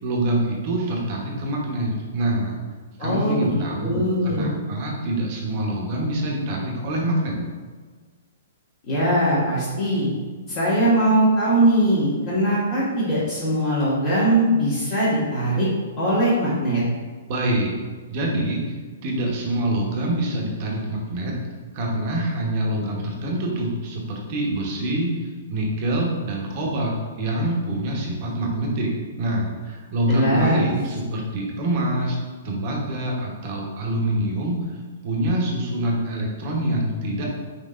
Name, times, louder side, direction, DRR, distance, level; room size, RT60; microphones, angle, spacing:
voice 1, 0.0-2.6 3.0-7.4 17.3-17.7 18.1-18.6 19.0-21.4 21.7-28.9 29.2-32.2 32.4-34.6 35.0-37.3, right 1 dB, 40° right, -1 dB, 0.9 m, -25 dB
voice 2, 3.0-3.5 3.8-4.5 8.9-10.1 10.5-15.7 16.0-16.8 30.1-30.7, right 1 dB, 40° left, -10 dB, 1.3 m, -21 dB
5.5 x 3.0 x 2.5 m, 1.5 s
hypercardioid pair, 160°, 0 cm